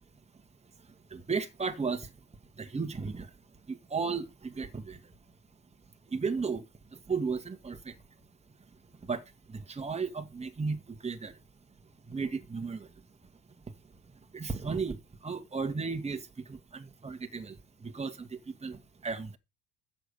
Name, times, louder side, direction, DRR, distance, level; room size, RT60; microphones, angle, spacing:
voice 1, 1.1-2.1 2.5-3.4 3.7-5.1 6.1-8.0 9.0-11.4 12.1-12.9 14.0-19.4, right 5 dB, 15° right, 1.6 m, -35 dB
7.6 x 7.1 x 6.7 m
hypercardioid pair, 70°, 46 cm